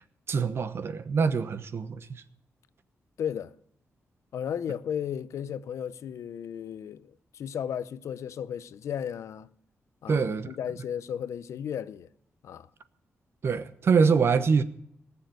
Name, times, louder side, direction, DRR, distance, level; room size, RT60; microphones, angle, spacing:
voice 1, 0.3-2.1 10.1-10.5 13.4-14.6, right 5 dB, 60° right, 1.0 m, -24 dB
voice 2, 3.2-3.5 4.3-9.5 10.0-12.1 12.4-12.7, left 8 dB, 90° left, 0.6 m, -34 dB
19.0 x 7.3 x 7.7 m
cardioid pair, 105°, 5 cm